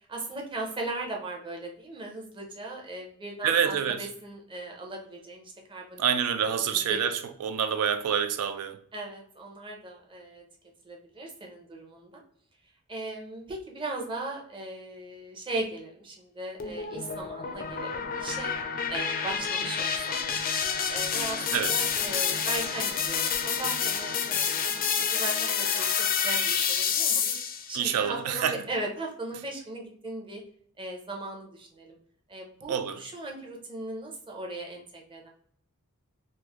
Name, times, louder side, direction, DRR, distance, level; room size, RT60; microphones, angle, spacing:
voice 1, 0.1-6.0 6.4-7.0 8.9-10.5 10.8-12.2 12.9-18.6 18.9-20.2 20.9-24.7 25.1-27.4 27.7-30.4 30.8-32.0 32.3-35.3, right 2 dB, 25° right, 0.7 m, -38 dB
voice 2, 3.4-4.1 6.0-8.8 21.5-21.7 27.7-28.6 32.7-33.0, right 8 dB, 90° right, 0.3 m, -27 dB
sound 1, 16.6-27.7, left 7 dB, 40° left, 0.4 m, -28 dB
3.2 x 2.0 x 3.4 m
head